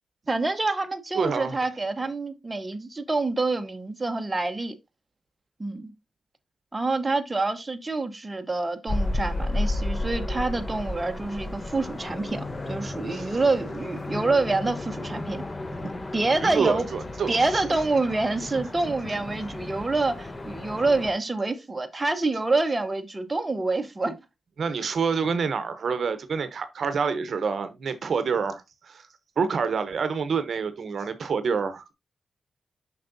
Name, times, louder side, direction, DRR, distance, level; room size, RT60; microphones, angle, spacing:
voice 1, 0.3-4.7 5.6-5.9 6.7-15.4 16.1-16.9 17.3-24.2, right 3 dB, 20° right, 1.0 m, -27 dB
voice 2, 1.1-1.6 13.1-13.3 15.8-15.9 16.4-17.4 24.6-29.1 29.4-31.8, right 5 dB, 60° right, 0.8 m, -27 dB
sound 1, 8.9-21.1, left 2 dB, 25° left, 0.8 m, -33 dB
7.4 x 5.9 x 2.6 m
wide cardioid pair, 115°, 0 cm